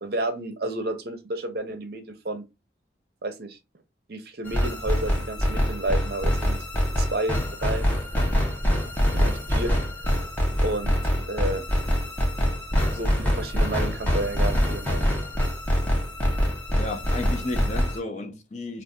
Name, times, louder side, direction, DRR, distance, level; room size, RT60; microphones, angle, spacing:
voice 1, 0.0-2.5 3.2-3.6 4.1-6.6 7.0-7.9 9.1-10.2 10.6-11.7 12.9-15.0, right 2 dB, 55° right, 0.6 m, -31 dB
sound 1, 4.5-18.0, equal, 10° left, 0.8 m, -24 dB
voice 2, 16.8-18.8, left 2 dB, 40° left, 0.5 m, -33 dB
2.6 x 2.5 x 3.5 m
head